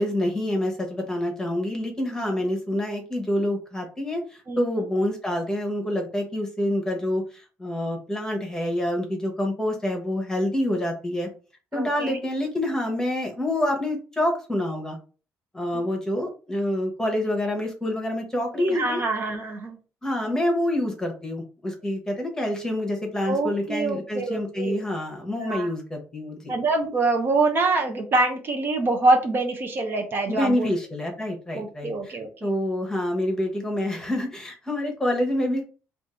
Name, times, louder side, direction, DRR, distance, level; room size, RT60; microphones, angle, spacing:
voice 1, 0.0-11.3 11.7-15.0 15.5-19.0 20.0-26.5 30.3-35.6, left 1 dB, 10° left, 1 dB, 1.0 m, -27 dB
voice 2, 11.7-12.2 15.7-15.8 18.6-19.8 23.3-24.8 25.4-25.7 26.5-30.7 31.5-32.5, right 3 dB, 40° right, 3 dB, 0.6 m, -25 dB
2.7 x 2.4 x 3.6 m, 0.36 s
cardioid pair, 115°, 6 cm